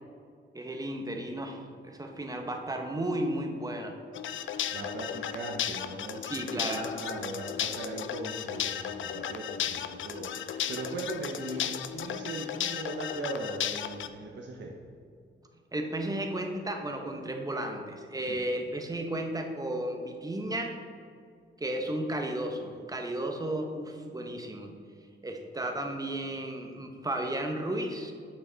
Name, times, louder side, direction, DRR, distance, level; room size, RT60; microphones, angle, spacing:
voice 1, 0.5-4.0 6.2-6.9 15.7-20.8 21.6-24.7 25.2-28.1, right 1 dB, 20° right, 3 dB, 1.0 m, -34 dB
sound 1, 4.1-14.1, left 9 dB, 75° left, 0.4 m, -35 dB
voice 2, 4.7-14.7 18.3-18.4, right 2 dB, 65° right, -1 dB, 0.9 m, -39 dB
8.4 x 6.0 x 3.9 m, 2.2 s
cardioid pair, 80°, 20 cm